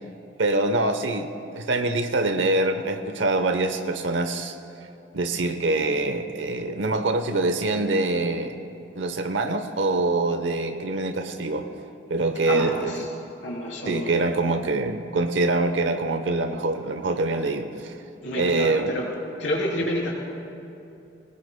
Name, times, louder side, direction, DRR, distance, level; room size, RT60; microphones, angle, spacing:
voice 1, 0.4-4.5 5.1-8.5 9.0-11.7 12.1-12.9 13.9-17.9 18.4-18.9, right 2 dB, 90° right, 8 dB, 0.9 m, -24 dB
voice 2, 12.5-13.0 13.4-14.3 18.2-19.1 19.4-20.1, equal, 80° left, -3 dB, 3.6 m, -29 dB
21.0 x 19.0 x 2.2 m, 2.7 s
head